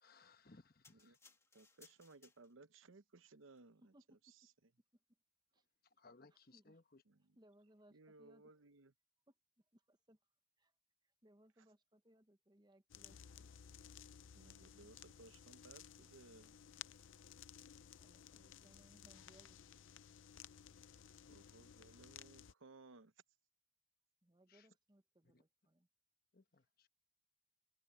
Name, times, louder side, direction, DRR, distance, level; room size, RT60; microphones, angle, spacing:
voice 1, 0.0-1.2 6.0-7.0 24.5-24.7 25.3-25.4 26.3-26.9, left 3 dB, 50° left, 1.2 m, -65 dB
sound 1, 0.8-2.8 3.5-3.6, left 4 dB, 15° left, 1.6 m, -67 dB
voice 2, 0.9-3.9 7.1-7.4 7.9-8.9 14.3-16.6 21.3-23.1, right 3 dB, 90° right, 0.9 m, -62 dB
voice 3, 6.0-6.8 7.3-8.5 9.3-10.2 10.6-10.8 11.0-13.5 18.0-19.6 24.2-25.9 26.5-26.7, right 1 dB, 20° right, 1.0 m, -69 dB
sound 2, 12.9-22.5, left 9 dB, 75° left, 0.6 m, -57 dB
head